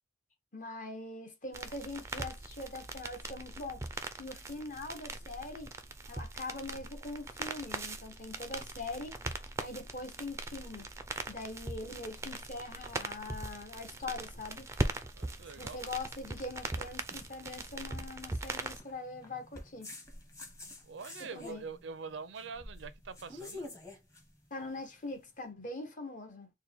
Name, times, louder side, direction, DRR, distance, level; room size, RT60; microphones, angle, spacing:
voice 1, 0.5-5.7 6.1-10.9 11.3-14.7 15.6-19.9 21.2-21.6 24.5-26.5, left 2 dB, 45° left, 1.1 m, -42 dB
sound 1, 1.5-18.8, right 2 dB, 15° right, 0.4 m, -40 dB
sound 2, 12.1-25.3, left 2 dB, 15° left, 1.0 m, -51 dB
voice 2, 15.1-15.8 20.9-23.8, right 5 dB, 80° right, 0.5 m, -44 dB
4.4 x 2.2 x 3.4 m
head